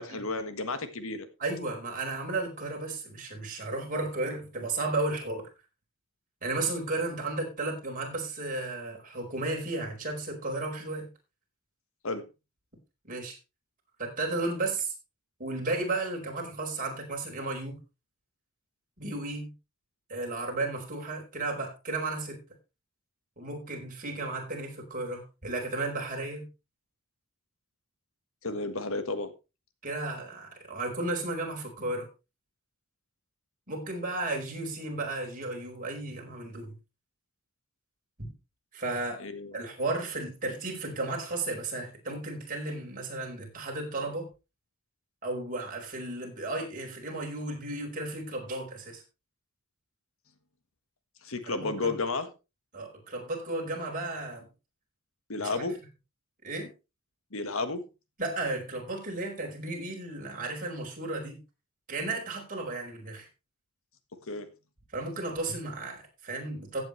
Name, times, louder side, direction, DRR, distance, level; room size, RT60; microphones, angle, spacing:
voice 1, 0.0-1.3 12.0-12.2 28.4-29.3 39.2-39.6 51.2-52.3 55.3-55.8 57.3-57.8 64.3-64.5, left 3 dB, 65° left, 10 dB, 1.5 m, -32 dB
voice 2, 1.4-5.4 6.4-11.1 13.1-13.4 14.0-14.9 15.4-17.8 19.0-19.5 20.1-22.4 23.4-26.5 29.8-32.1 33.7-36.7 38.2-38.3 38.7-39.2 39.5-44.3 45.2-49.0 51.4-51.9 52.7-54.5 55.4-55.6 56.4-56.7 58.2-61.4 61.9-63.3 64.9-66.8, right 2 dB, 40° right, 1 dB, 4.6 m, -34 dB
15.5 x 8.9 x 3.2 m, 0.28 s
head